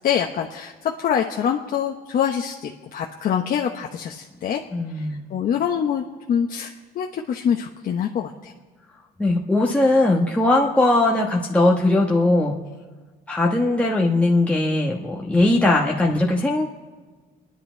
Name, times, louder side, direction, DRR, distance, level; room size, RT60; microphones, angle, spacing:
voice 1, 0.0-4.6 5.0-8.5, left 8 dB, 55° left, 1 dB, 1.0 m, -25 dB
voice 2, 4.7-5.2 9.2-12.6 13.3-16.7, left 2 dB, 10° left, -1 dB, 1.2 m, -19 dB
29.0 x 10.5 x 4.5 m, 1.4 s
cardioid pair, 110°, 17 cm